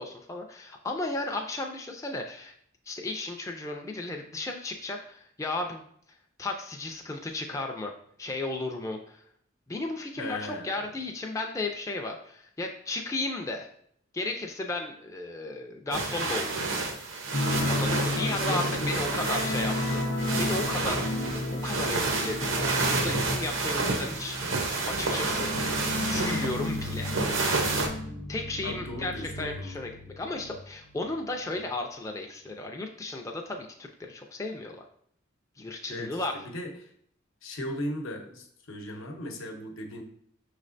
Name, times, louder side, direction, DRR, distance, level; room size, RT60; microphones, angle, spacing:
voice 1, 0.0-2.5 2.9-5.8 6.4-7.9 8.2-9.2 9.7-13.7 14.1-16.7 17.7-20.0 20.4-25.5 26.0-27.1 28.3-34.8 35.6-36.3, left 2 dB, 15° left, 2 dB, 0.3 m, -34 dB
voice 2, 10.2-10.8 18.2-20.0 24.2-24.4 28.6-29.8 35.9-36.7 37.4-40.0, left 1 dB, 90° left, 2 dB, 0.8 m, -38 dB
sound 1, 15.9-27.9, right 3 dB, 80° right, 0.8 m, -30 dB
sound 2, 17.3-30.6 30.9-31.1 31.4-31.5, left 2 dB, 50° left, 0.7 m, -33 dB
5.6 x 3.2 x 2.5 m, 0.66 s
head